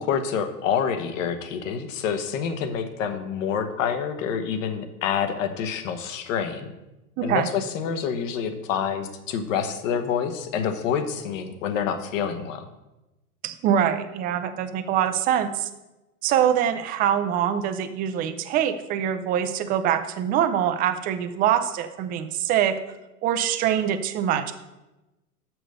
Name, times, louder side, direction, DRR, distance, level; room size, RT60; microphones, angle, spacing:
voice 1, 0.0-6.7 7.2-12.7, left 7 dB, 55° left, 8 dB, 1.2 m, -27 dB
voice 2, 7.2-7.5 13.4-15.7 16.2-22.8 23.2-24.5, right 9 dB, 20° right, 9 dB, 0.4 m, -24 dB
6.3 x 6.2 x 6.5 m, 1.0 s
hypercardioid pair, 105°, 46 cm